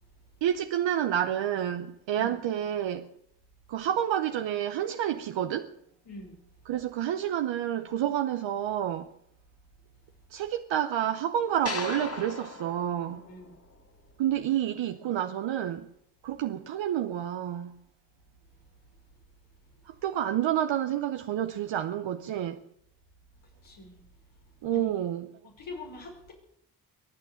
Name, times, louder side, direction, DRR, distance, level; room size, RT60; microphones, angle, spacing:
voice 1, 0.4-3.1 3.7-5.7 6.7-9.1 10.3-13.2 14.2-15.9 16.2-17.8 19.9-22.6 24.6-25.3, right 10 dB, 85° right, 0.8 m, -29 dB
voice 2, 6.1-6.4 13.1-13.6 23.6-24.0 24.7-24.9 25.4-26.3, left 2 dB, 85° left, 5.4 m, -44 dB
sound 1, 11.7-14.0, left 3 dB, 30° left, 1.7 m, -38 dB
22.5 x 9.1 x 7.0 m
supercardioid pair, 45°, 44 cm